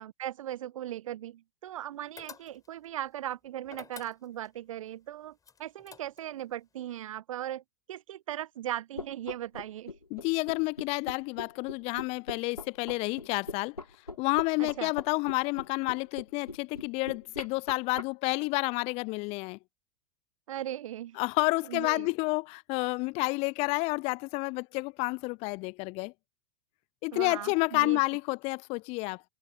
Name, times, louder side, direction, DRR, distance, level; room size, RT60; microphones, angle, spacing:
voice 1, 0.0-7.6 7.9-9.9 14.6-14.9 20.5-21.2 21.7-22.1 27.1-28.0, right 12 dB, 65° right, 0.9 m, -38 dB
sound 1, 2.2-2.9 3.7-4.6 5.4-6.4, left 6 dB, 20° left, 6.9 m, -49 dB
sound 2, 9.0-18.0, left 3 dB, 85° left, 2.5 m, -40 dB
voice 2, 10.1-13.8 14.2-19.6 21.2-26.1 27.0-29.2, left 27 dB, 35° left, 0.4 m, -30 dB
figure-of-eight pair, 90°, 19 cm